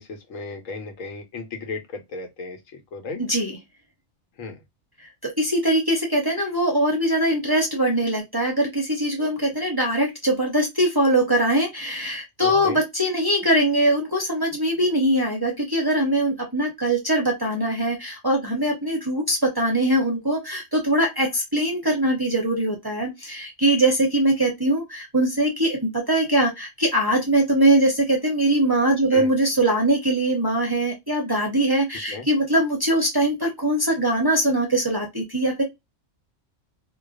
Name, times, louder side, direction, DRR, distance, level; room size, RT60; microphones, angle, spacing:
voice 1, 0.0-3.2 4.4-4.6 12.4-12.8 29.1-29.3 32.1-32.3, left 3 dB, 85° left, 1.2 m, -35 dB
voice 2, 5.2-35.6, right 1 dB, 25° right, 0.5 m, -22 dB
2.4 x 2.3 x 2.2 m
omnidirectional pair, 1.3 m